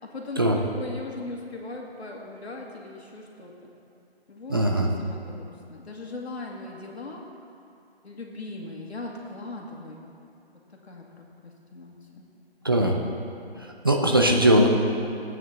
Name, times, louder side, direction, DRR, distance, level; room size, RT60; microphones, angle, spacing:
voice 1, 0.0-3.7 4.3-4.6 5.0-7.2 8.0-10.1 10.8-12.3, left 2 dB, 75° left, -1 dB, 2.4 m, -39 dB
voice 2, 4.5-4.9 12.6-13.0 13.6-14.7, right 1 dB, 20° right, 1 dB, 0.5 m, -20 dB
14.5 x 9.2 x 4.0 m, 2.6 s
figure-of-eight pair, 155°, 32 cm